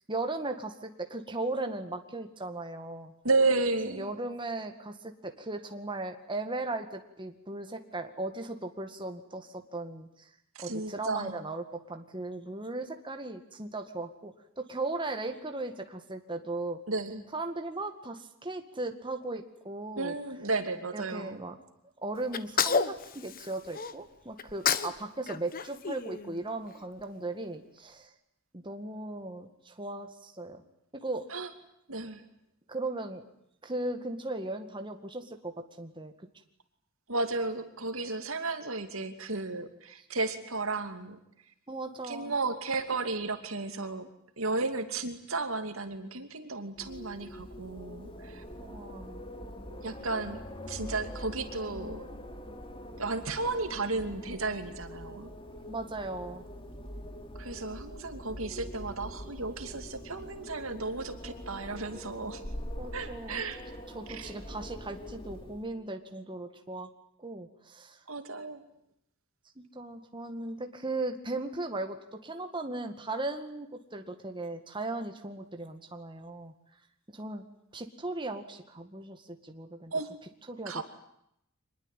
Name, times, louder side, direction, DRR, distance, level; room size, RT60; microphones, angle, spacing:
voice 1, 0.1-3.1 3.8-10.3 10.6-16.8 17.3-20.1 20.9-21.6 22.0-28.1 28.5-30.6 30.9-31.3 32.7-33.2 33.6-36.1 41.7-42.3 48.6-49.2 55.7-56.5 62.8-63.4 63.9-66.9 67.2-68.0 69.6-76.5 77.1-77.4 77.7-79.9 80.5-80.8, right 2 dB, 20° right, 5 dB, 2.1 m, -37 dB
voice 2, 3.2-4.1 10.5-11.4 16.9-17.2 20.0-21.4 31.3-31.5 31.9-32.2 37.1-41.2 42.0-44.1 44.4-48.4 49.8-50.4 50.7-52.0 53.0-55.3 57.4-62.4 62.9-63.6 64.1-64.3 68.1-68.6 79.9-80.1 80.7-80.8, right 3 dB, 70° right, 8 dB, 2.7 m, -33 dB
Sneeze, 22.3-23.9 24.4-25.0 25.3-26.7, left 6 dB, 40° left, 1.3 m, -30 dB
Wind, 46.8-65.8, equal, 25° left, 3.0 m, -43 dB
25.0 x 21.5 x 9.2 m, 0.77 s
head